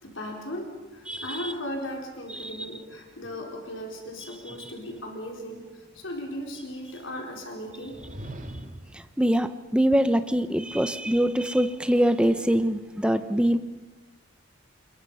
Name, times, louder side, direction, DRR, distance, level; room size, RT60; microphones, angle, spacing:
voice 1, 0.0-8.0, equal, 75° left, 1 dB, 4.4 m, -37 dB
voice 2, 1.1-1.5 2.4-2.5 8.9-13.6, equal, 5° right, 10 dB, 0.8 m, -24 dB
sound 1, 7.7-9.0, right 1 dB, 40° right, 2.1 m, -40 dB
28.5 x 22.0 x 5.6 m, 1.2 s
head